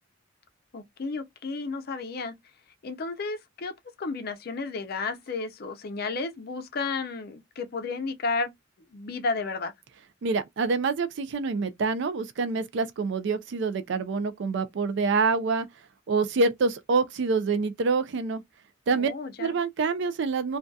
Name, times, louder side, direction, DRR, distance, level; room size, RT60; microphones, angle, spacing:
voice 1, 0.7-2.4 2.8-8.5 8.9-9.7 19.0-19.6, left 4 dB, 50° left, 0.5 m, -32 dB
voice 2, 10.2-15.7 16.1-18.4 18.9-19.1 19.4-20.6, right 4 dB, 60° right, 0.4 m, -26 dB
2.6 x 2.3 x 2.2 m
head